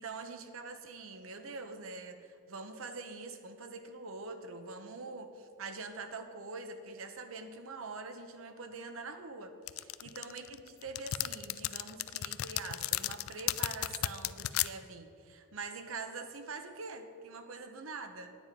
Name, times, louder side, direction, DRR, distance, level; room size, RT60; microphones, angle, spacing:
voice 1, 0.0-18.4, right 3 dB, 75° right, 7 dB, 0.8 m, -44 dB
sound 1, 9.7-14.7, left 15 dB, 75° left, 0.3 m, -34 dB
9.5 x 9.5 x 5.2 m, 2.4 s
head